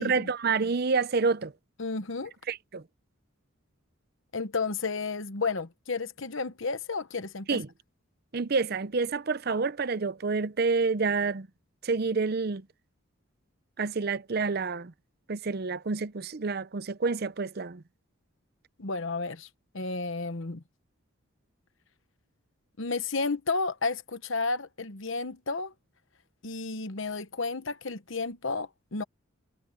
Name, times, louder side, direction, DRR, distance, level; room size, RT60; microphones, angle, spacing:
voice 1, 0.0-1.5 2.5-2.8 7.5-7.7 8.3-11.5 11.8-12.6 13.8-14.9 15.3-17.8, right 4 dB, 45° right, 0.6 m, -28 dB
voice 2, 1.8-2.3 4.3-7.6 18.8-19.5 19.7-20.6 22.8-25.7 26.4-29.0, left 4 dB, 65° left, 1.1 m, -32 dB
head